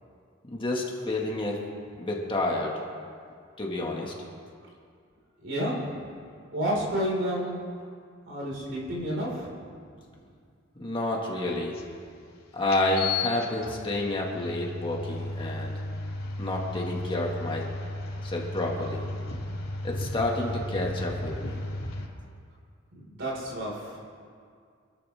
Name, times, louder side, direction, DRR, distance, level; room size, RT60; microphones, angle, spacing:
voice 1, 0.5-1.6 2.0-2.8 3.6-4.1 10.8-11.8 12.5-15.8 16.4-17.7 18.2-19.0 19.8-21.6, left 2 dB, 25° left, -2 dB, 2.0 m, -29 dB
voice 2, 5.4-5.8 6.5-7.6 8.3-9.5 22.9-23.9, equal, 65° right, -5 dB, 5.0 m, -30 dB
sound 1, 11.7-11.8 12.7-22.1, left 2 dB, 80° left, 4.3 m, -34 dB
27.0 x 12.0 x 3.6 m, 2.2 s
head